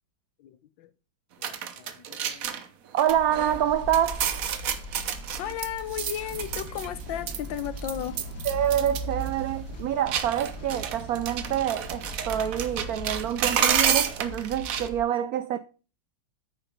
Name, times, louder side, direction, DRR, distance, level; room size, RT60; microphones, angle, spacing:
voice 1, 0.4-0.9 1.4-2.6 5.0-8.2, left 11 dB, 80° left, 1.4 m, -35 dB
sound 1, 1.4-2.7 3.0-3.6 3.9-7.0 7.3-9.0 9.3-9.4 10.1-14.9, right 8 dB, 60° right, 1.0 m, -30 dB
voice 2, 2.9-4.3 8.4-15.6, right 10 dB, 85° right, 0.8 m, -26 dB
sound 2, 3.1-15.0, right 1 dB, 60° left, 2.5 m, -40 dB
sound 3, 6.3-13.3, equal, 15° right, 2.4 m, -46 dB
9.0 x 5.0 x 5.2 m
omnidirectional pair, 2.1 m